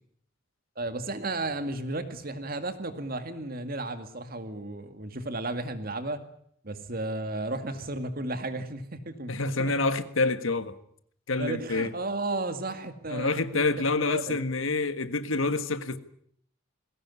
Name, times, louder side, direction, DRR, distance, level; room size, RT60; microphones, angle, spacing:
voice 1, 0.8-6.2 6.6-9.7 11.4-14.4, right 2 dB, 45° right, 2.2 m, -34 dB
voice 2, 9.3-10.8 11.3-11.9 13.1-16.0, left 3 dB, 80° left, 1.6 m, -27 dB
21.0 x 17.0 x 9.7 m
head